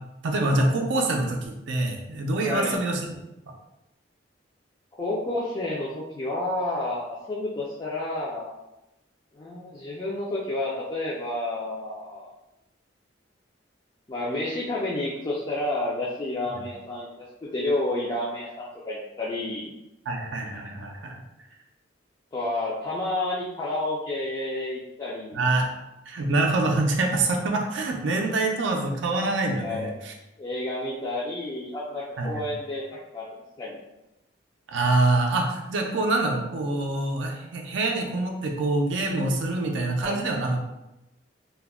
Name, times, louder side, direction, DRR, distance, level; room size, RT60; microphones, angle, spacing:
voice 1, 0.2-3.0 16.6-16.7 20.1-21.2 25.3-25.7 26.1-30.1 32.2-32.5 34.7-40.6, right 2 dB, 70° right, 1 dB, 0.4 m, -25 dB
voice 2, 2.4-2.8 5.0-8.5 9.3-12.3 14.1-19.7 22.3-25.4 29.6-29.9 30.4-32.8 33.1-33.3 33.6-33.8 40.0-40.2, left 2 dB, 20° left, -6 dB, 0.3 m, -30 dB
2.2 x 2.1 x 3.4 m, 0.94 s
head